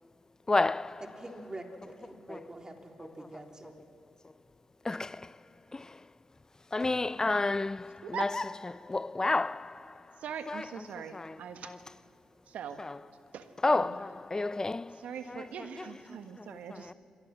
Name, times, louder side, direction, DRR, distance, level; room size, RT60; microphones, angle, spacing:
voice 1, 0.5-1.2 2.3-2.4 4.9-5.3 5.7-5.8 6.7-9.8 10.5-10.8 11.1-11.4 11.6-11.8 12.8-13.0 13.6-15.0 15.3-15.4 15.8-16.0 16.7-16.9, left 3 dB, 25° left, 0.5 m, -31 dB
voice 2, 1.0-3.7, right 2 dB, 30° right, 3.6 m, -45 dB
voice 3, 8.0-8.3 10.2-11.7 12.5-12.8 13.3-14.1 14.9-16.9, right 8 dB, 70° right, 1.5 m, -42 dB
28.0 x 22.5 x 6.2 m
hypercardioid pair, 40°, 2 cm